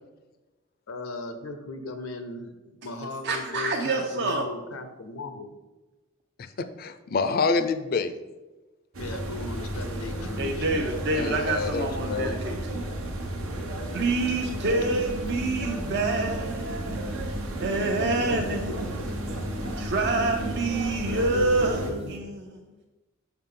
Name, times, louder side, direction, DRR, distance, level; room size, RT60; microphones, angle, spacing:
voice 1, 0.9-5.5 9.0-10.7 18.2-19.6 21.1-22.1, left 3 dB, 90° left, 8 dB, 0.6 m, -37 dB
voice 2, 3.2-4.5 10.4-12.8 13.9-18.9 19.8-22.6, right 2 dB, 55° right, 2 dB, 0.6 m, -27 dB
voice 3, 6.4-8.1 11.1-12.4, left 4 dB, 45° left, 10 dB, 0.4 m, -27 dB
sound 1, 8.9-21.9, right 1 dB, 80° right, 0.9 m, -33 dB
sound 2, 13.9-22.2, equal, 30° right, 0.9 m, -39 dB
5.8 x 5.7 x 3.7 m, 1.1 s
head